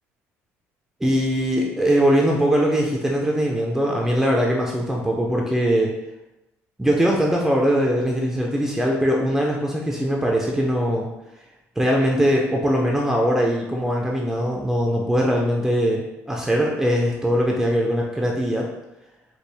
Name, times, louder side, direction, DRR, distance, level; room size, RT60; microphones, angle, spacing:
voice 1, 1.0-5.9 6.8-11.1 11.8-18.7, equal, 5° right, -1 dB, 0.4 m, -21 dB
4.3 x 2.3 x 3.3 m, 0.95 s
cardioid pair, 135°, 5 cm